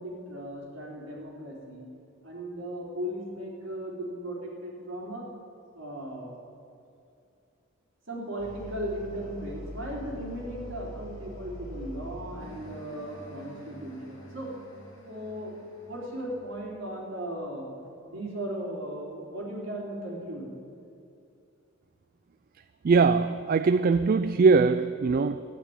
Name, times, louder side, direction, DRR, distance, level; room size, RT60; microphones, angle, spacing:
voice 1, 0.0-1.9 2.2-5.3 5.7-6.4 8.1-14.5 15.0-15.6 15.8-17.7 18.1-20.5, right 1 dB, 65° right, 3.7 m, -37 dB
sound 1, 8.4-16.7, equal, 70° left, 3.3 m, -45 dB
voice 2, 22.8-25.4, right 4 dB, 45° right, 0.3 m, -21 dB
13.5 x 9.8 x 8.8 m
head